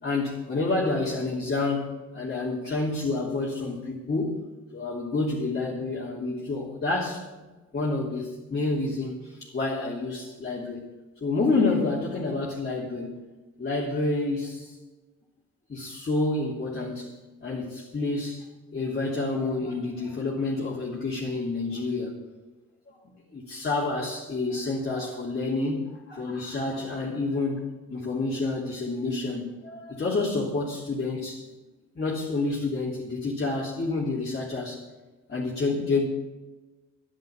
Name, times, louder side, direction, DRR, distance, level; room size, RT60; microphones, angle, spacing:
voice 1, 0.0-4.3 4.7-7.2 7.7-10.8 11.2-13.2 13.6-14.7 15.7-17.1 17.4-18.5 18.7-22.2 22.9-23.0 23.3-27.6 27.9-31.4 31.9-34.8 35.3-36.0, left 3 dB, 35° left, -6 dB, 3.2 m, -28 dB
11.0 x 10.5 x 7.1 m, 1.2 s
cardioid pair, 90°, 30 cm